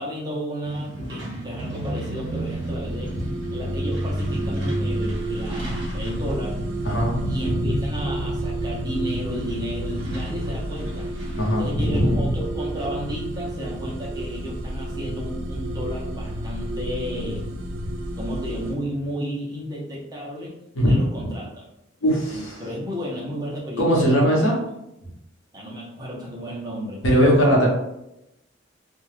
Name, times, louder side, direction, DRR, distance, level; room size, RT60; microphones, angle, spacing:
voice 1, 0.0-6.6 7.3-11.1 11.6-17.5 18.2-20.5 20.8-21.6 22.3-24.5 25.5-27.0, equal, 20° right, -4 dB, 0.7 m, -33 dB
Truck, 0.6-19.1, right 1 dB, 65° right, 1.1 m, -35 dB
sound 1, 2.2-18.7, right 1 dB, 85° right, 0.4 m, -31 dB
voice 2, 6.8-7.8 11.4-12.3 20.7-21.3 22.0-22.6 23.8-24.6 27.0-27.7, equal, 85° left, -2 dB, 0.9 m, -20 dB
2.4 x 2.2 x 3.2 m, 0.86 s
head